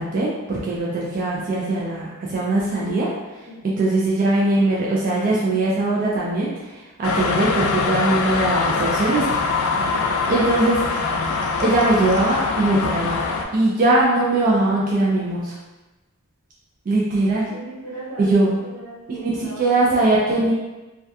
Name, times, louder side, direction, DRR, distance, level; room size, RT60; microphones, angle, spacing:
voice 1, 0.0-3.1 3.6-9.4 10.3-10.8 11.6-13.2 13.5-15.6 16.9-17.5 18.2-18.6 19.1-20.5, right 2 dB, 40° right, -5 dB, 0.3 m, -21 dB
sound 1, 7.0-13.5, left 4 dB, 75° left, 0.3 m, -23 dB
voice 2, 9.7-10.1 17.4-20.5, right 1 dB, 85° right, -9 dB, 1.2 m, -38 dB
2.2 x 2.2 x 2.6 m, 1.1 s
head